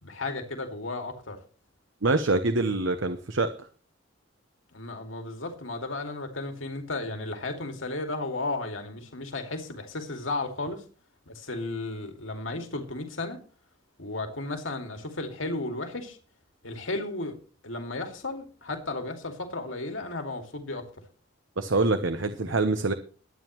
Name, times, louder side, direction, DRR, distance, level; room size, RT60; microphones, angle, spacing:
voice 1, 0.0-1.4 4.7-10.8 11.3-13.4 14.0-16.2 16.6-17.3 17.6-20.9, left 2 dB, 80° left, 5 dB, 2.3 m, -34 dB
voice 2, 2.0-3.5 21.6-22.9, right 3 dB, 70° right, 9 dB, 1.0 m, -25 dB
21.5 x 9.2 x 3.1 m, 0.39 s
head